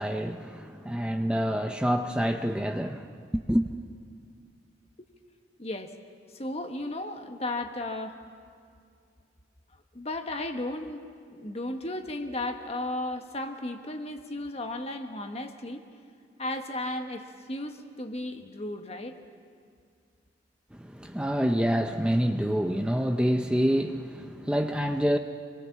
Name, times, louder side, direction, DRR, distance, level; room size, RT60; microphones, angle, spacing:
voice 1, 0.0-3.7 20.7-25.2, equal, 5° right, 0.6 m, -27 dB
voice 2, 5.6-6.0 6.3-8.2 9.9-11.0 11.3-15.8 16.4-19.2, left 1 dB, 35° left, 1.4 m, -34 dB
27.0 x 21.5 x 7.3 m
head